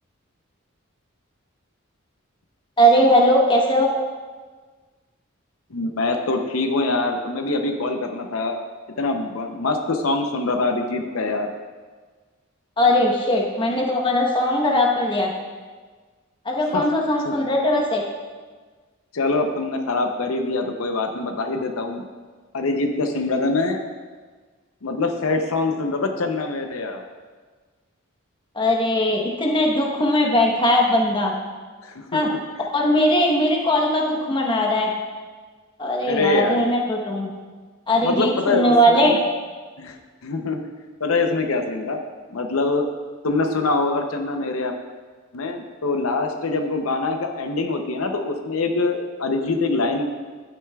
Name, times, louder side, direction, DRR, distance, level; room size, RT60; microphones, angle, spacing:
voice 1, 2.8-3.9 12.8-15.3 16.4-18.0 28.5-31.3 32.1-32.3 32.7-34.9 35.8-37.3 37.9-39.2, equal, 25° left, 0 dB, 1.0 m, -19 dB
voice 2, 5.7-8.6 9.0-11.5 16.7-16.9 17.2-17.3 19.1-22.0 22.5-23.8 24.8-27.0 31.8-32.4 36.1-36.6 37.9-39.1 39.8-40.0 40.2-40.6 41.0-42.0 42.3-42.9 43.2-44.7 45.3-50.0, left 3 dB, 80° left, 5 dB, 0.7 m, -24 dB
11.5 x 9.1 x 2.3 m, 1.4 s
head